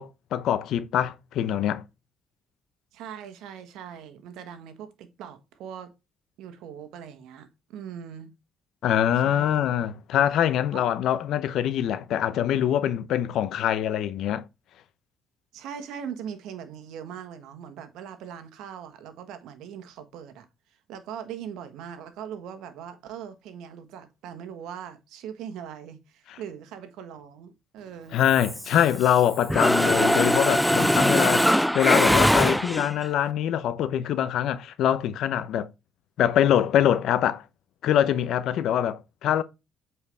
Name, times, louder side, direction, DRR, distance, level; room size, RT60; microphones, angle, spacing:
voice 1, 0.0-1.8 8.8-14.4 28.1-31.5 31.7-35.7 36.2-37.4 37.8-39.4, left 10 dB, 70° left, 0.8 m, -24 dB
voice 2, 2.9-5.9 6.4-8.3 9.2-9.7 10.7-10.9 15.5-20.5 20.9-28.2, right 8 dB, 80° right, 1.4 m, -40 dB
Mechanisms, 28.3-29.2 29.5-33.1, equal, ahead, 0.3 m, -21 dB
8.2 x 4.7 x 3.4 m
cardioid pair, 90°, 0 cm